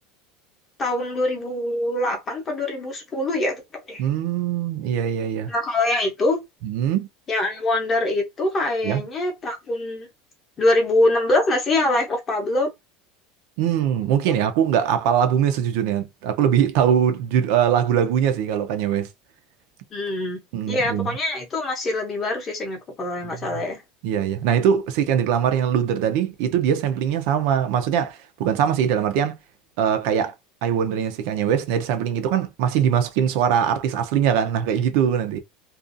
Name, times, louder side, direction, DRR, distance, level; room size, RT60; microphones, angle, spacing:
voice 1, 0.8-3.6 3.9-4.0 5.5-6.4 7.3-10.1 10.6-12.7 14.3-14.4 19.9-20.4 20.7-23.8, left 2 dB, 20° left, 0.7 m, -24 dB
voice 2, 4.0-5.5 6.6-7.1 8.8-9.0 13.6-19.1 20.5-21.1 23.2-23.3 24.0-29.4 29.8-30.3 30.6-35.4, right 8 dB, 55° right, 0.5 m, -22 dB
2.5 x 2.3 x 2.5 m
supercardioid pair, 175°, 0 cm